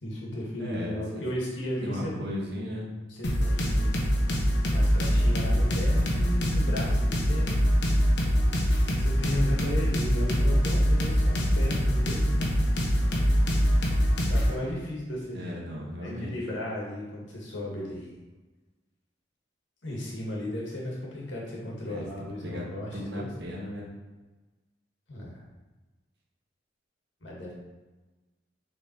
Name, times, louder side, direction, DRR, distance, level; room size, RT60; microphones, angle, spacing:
voice 1, 0.0-2.1 3.1-3.9 4.2-4.4 4.7-7.6 9.0-12.7 14.3-15.6 16.0-18.2 19.8-23.3 25.1-25.4 27.2-27.5, left 1 dB, 85° left, -3 dB, 1.9 m, -35 dB
voice 2, 0.6-1.2 1.8-2.9 15.3-16.4 21.8-23.9, equal, 60° right, -2 dB, 1.5 m, -36 dB
sound 1, 3.2-14.5, equal, 70° left, 1.2 m, -24 dB
6.6 x 4.1 x 4.6 m, 1.2 s
head